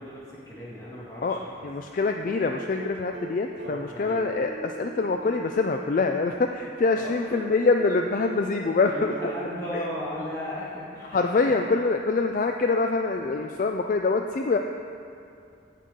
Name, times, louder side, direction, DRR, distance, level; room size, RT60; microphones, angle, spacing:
voice 1, 0.0-1.7 3.6-4.2 6.9-7.1 8.9-11.5, left 1 dB, 15° left, -7 dB, 2.0 m, -36 dB
voice 2, 1.2-9.1 11.1-14.6, left 3 dB, 45° left, 4 dB, 0.3 m, -25 dB
sound 1, 2.3-6.3 7.3-10.9 12.3-12.4, right 4 dB, 65° right, 0.7 m, -40 dB
17.0 x 5.6 x 3.7 m, 2.5 s
head